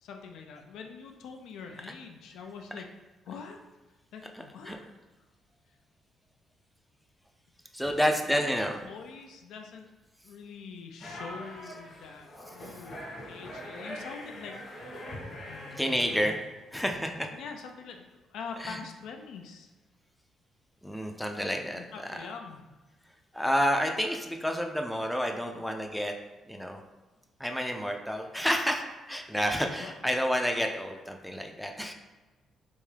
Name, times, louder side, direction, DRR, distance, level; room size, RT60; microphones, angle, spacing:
voice 1, 0.0-2.9 3.2-3.6 4.1-4.9 7.9-8.1 8.4-9.9 10.2-15.9 17.3-19.7 21.7-22.7 29.6-29.9, left 5 dB, 80° left, 3 dB, 0.4 m, -44 dB
voice 2, 7.7-8.8 15.8-16.4 16.7-17.3 18.6-18.8 20.8-22.2 23.3-26.2 26.4-26.8 27.4-31.9, equal, ahead, 3 dB, 0.4 m, -29 dB
sound 1, 11.0-16.3, left 1 dB, 50° left, 1.1 m, -43 dB
3.4 x 2.7 x 3.4 m, 1.2 s
cardioid pair, 90°, 0 cm